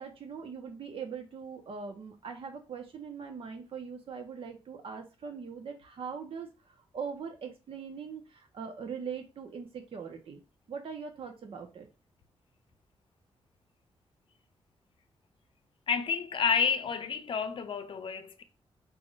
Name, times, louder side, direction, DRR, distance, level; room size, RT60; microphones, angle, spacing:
voice 1, 0.0-10.4 10.7-11.9, right 6 dB, 65° right, 1.2 m, -41 dB
voice 2, 15.9-18.4, left 6 dB, 55° left, 0.6 m, -30 dB
4.8 x 3.5 x 2.7 m
wide cardioid pair, 120°, 10 cm